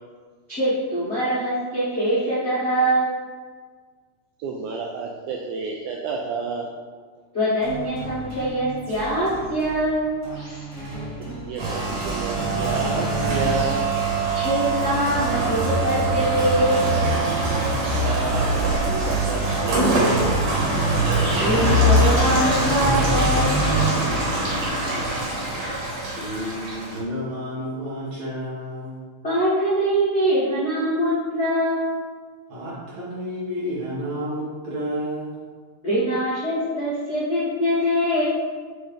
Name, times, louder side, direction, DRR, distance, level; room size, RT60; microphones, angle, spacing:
voice 1, 0.5-3.2 7.3-10.1 14.3-17.0 21.2-23.6 29.2-32.0 35.8-38.2, right 1 dB, 80° left, -11 dB, 0.6 m, -23 dB
voice 2, 4.4-6.7 11.2-13.8 18.0-20.4, right 4 dB, 90° right, 0 dB, 1.7 m, -30 dB
sound 1, 7.6-17.3, right 1 dB, 30° right, 0.9 m, -34 dB
Rain, 11.6-27.0, right 1 dB, 70° right, 2.8 m, -22 dB
voice 3, 26.1-29.0 32.5-35.4, equal, 55° right, -8 dB, 2.6 m, -31 dB
5.5 x 3.4 x 5.1 m, 1.5 s
omnidirectional pair, 4.0 m